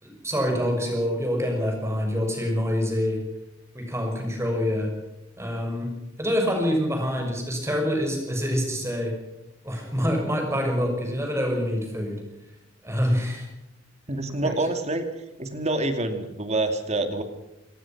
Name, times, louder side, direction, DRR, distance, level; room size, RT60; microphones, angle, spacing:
voice 1, 0.0-3.2 3.7-4.9 5.4-5.9 6.2-9.1 9.6-12.2 12.8-13.5 14.4-14.5, equal, 15° right, 2 dB, 6.4 m, -26 dB
voice 2, 14.1-15.1 15.4-17.2, right 2 dB, 35° right, 7 dB, 2.5 m, -26 dB
27.5 x 19.0 x 6.1 m, 0.91 s
head